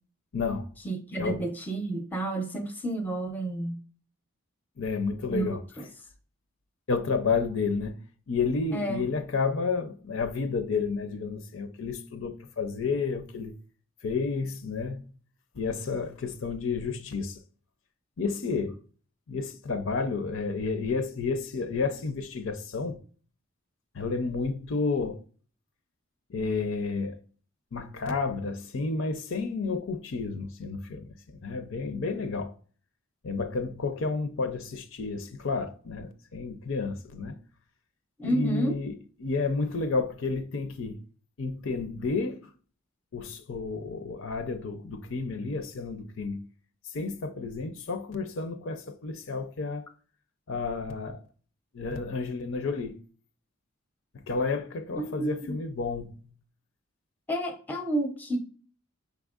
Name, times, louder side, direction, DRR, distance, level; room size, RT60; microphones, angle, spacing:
voice 1, 0.3-0.7 1.2-1.4 4.8-5.6 6.9-8.0 8.3-13.5 14.0-15.0 15.6-17.4 18.2-18.8 19.3-23.0 23.9-25.2 26.3-27.2 27.7-31.0 31.4-32.5 33.2-37.4 38.2-38.9 39.2-41.0 41.4-42.4 43.1-46.5 46.9-49.8 50.5-51.2 51.7-53.0 54.3-56.2, left 4 dB, 60° left, 0.5 m, -31 dB
voice 2, 0.8-3.8 5.3-5.9 8.7-9.0 38.2-38.8 54.9-55.6 57.3-58.4, right 2 dB, 10° left, 0.6 m, -30 dB
5.5 x 3.5 x 2.4 m
head